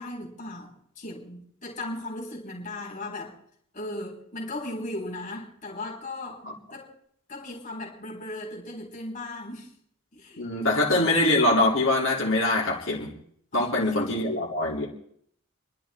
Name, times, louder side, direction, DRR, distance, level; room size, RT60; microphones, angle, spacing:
voice 1, 0.0-3.4 3.7-6.4 6.7-7.0 7.3-9.8 10.1-11.1 13.5-14.3, left 2 dB, 35° left, 3.9 m, -37 dB
voice 2, 10.4-13.1 13.5-14.9, left 2 dB, 65° left, 3.4 m, -23 dB
28.0 x 11.5 x 4.3 m
head